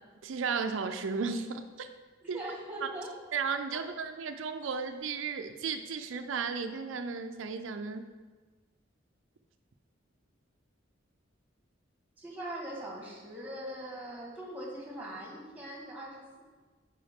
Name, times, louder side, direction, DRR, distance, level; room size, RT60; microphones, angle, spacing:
voice 1, 0.2-1.9 2.3-2.4 3.3-8.1, right 5 dB, 90° right, 7 dB, 0.4 m, -34 dB
voice 2, 2.2-3.1 3.7-3.8 12.2-16.4, right 1 dB, 10° right, -2 dB, 1.6 m, -41 dB
9.5 x 4.7 x 3.6 m, 1.3 s
head